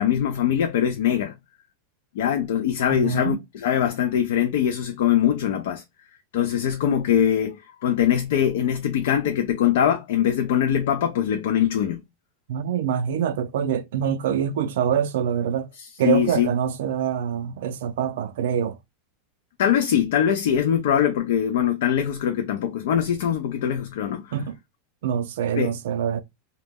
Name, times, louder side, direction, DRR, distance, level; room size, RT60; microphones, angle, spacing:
voice 1, 0.0-1.3 2.2-5.8 6.3-12.0 15.8-16.5 19.6-24.3 25.6-25.7, left 9 dB, 75° left, 0.3 m, -22 dB
voice 2, 3.0-3.4 12.5-15.7 16.0-18.8 24.3-24.6 25.0-26.2, right 8 dB, 80° right, 0.3 m, -25 dB
2.1 x 2.0 x 3.3 m
supercardioid pair, 155°, 0 cm